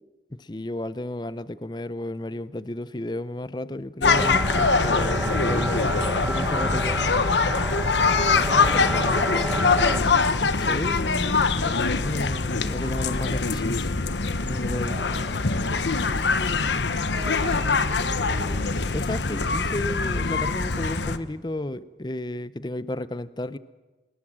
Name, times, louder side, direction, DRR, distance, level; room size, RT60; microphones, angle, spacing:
voice 1, 0.4-5.9 6.3-7.0 10.4-11.8 12.0-13.9 14.4-15.0 18.9-23.6, left 1 dB, 25° left, 15 dB, 0.7 m, -32 dB
sound 1, 4.0-21.2, left 4 dB, 90° left, 1.2 m, -23 dB
sound 2, 4.1-10.0, right 1 dB, 10° right, 1.2 m, -29 dB
voice 2, 8.4-10.0 14.9-15.8 17.1-18.8, right 1 dB, 35° right, 2 dB, 6.3 m, -40 dB
25.0 x 21.0 x 7.5 m, 1.2 s
head